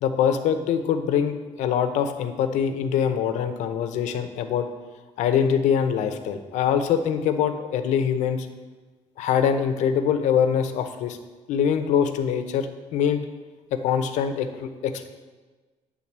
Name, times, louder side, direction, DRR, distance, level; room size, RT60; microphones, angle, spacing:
voice 1, 0.0-4.7 5.2-8.5 9.2-11.2 11.5-13.2 13.7-15.1, left 8 dB, 85° left, 8 dB, 0.8 m, -24 dB
10.0 x 3.8 x 7.3 m, 1.3 s
cardioid pair, 180°, 12 cm